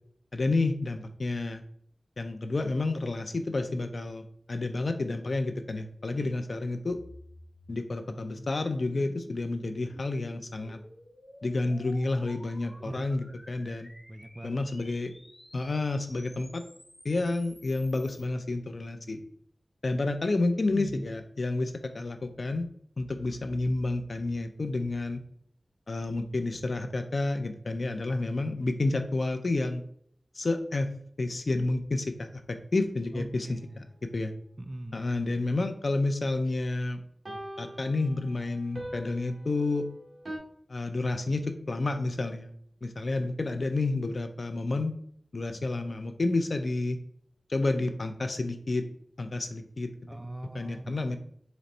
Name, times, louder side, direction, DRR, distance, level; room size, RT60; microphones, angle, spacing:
voice 1, 0.3-1.6 2.2-7.0 7.7-10.8 11.4-13.9 14.4-15.1 15.5-16.6 17.0-19.2 19.8-22.7 23.0-25.2 25.9-29.8 30.3-30.9 31.2-32.4 32.7-33.8 34.1-34.3 34.9-37.0 37.6-39.8 40.7-42.5 42.8-44.9 45.3-47.0 47.5-48.8 49.2-49.9 50.5-51.2, left 2 dB, 70° left, 7 dB, 0.5 m, -30 dB
sound 1, 6.9-18.2, equal, 25° left, 1.9 m, -53 dB
voice 2, 12.8-13.1 14.1-14.9 20.6-21.1 33.1-33.8 34.6-35.1 50.1-51.0, right 1 dB, 30° right, 8 dB, 0.4 m, -40 dB
sound 2, 33.0-33.1 37.3-40.4, right 1 dB, 60° right, 1.1 m, -42 dB
4.0 x 3.1 x 4.2 m, 0.64 s
wide cardioid pair, 70°, 0 cm